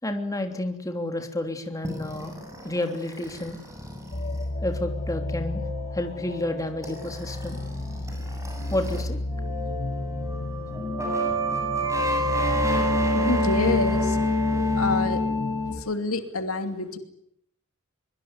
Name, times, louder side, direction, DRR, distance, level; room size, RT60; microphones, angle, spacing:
voice 1, 0.0-2.4 2.6-3.6 4.6-5.6 5.9-7.6 8.7-9.2, left 1 dB, 15° left, 5 dB, 3.1 m, -30 dB
sound 1, 1.8-9.0 9.3-15.7, left 1 dB, 15° right, 7.8 m, -29 dB
sound 2, 4.1-15.8, left 1 dB, 45° left, 1.6 m, -32 dB
voice 2, 13.1-14.2 14.7-15.2 15.7-17.0, left 3 dB, 80° left, 7 dB, 2.8 m, -27 dB
24.0 x 23.0 x 9.7 m, 0.74 s
head